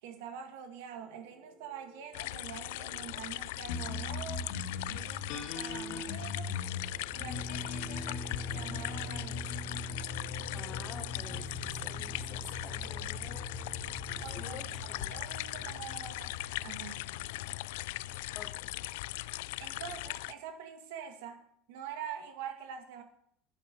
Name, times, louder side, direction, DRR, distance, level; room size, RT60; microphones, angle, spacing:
voice 1, 0.0-4.5 4.9-6.5 7.2-9.9 14.2-16.3 16.6-17.2 19.6-23.0, right 8 dB, 80° right, 6 dB, 2.1 m, -45 dB
sound 1, 0.9-15.2 15.5-15.8, right 3 dB, 45° right, 4.0 m, -54 dB
sound 2, 2.1-20.3, left 18 dB, 85° left, 0.3 m, -39 dB
sound 3, 3.7-18.4, left 3 dB, 60° left, 2.4 m, -41 dB
voice 2, 10.5-13.5 14.2-15.2 18.3-18.7, left 5 dB, 25° left, 8 dB, 1.2 m, -49 dB
10.0 x 9.0 x 6.2 m, 0.69 s
cardioid pair, 165°, 0 cm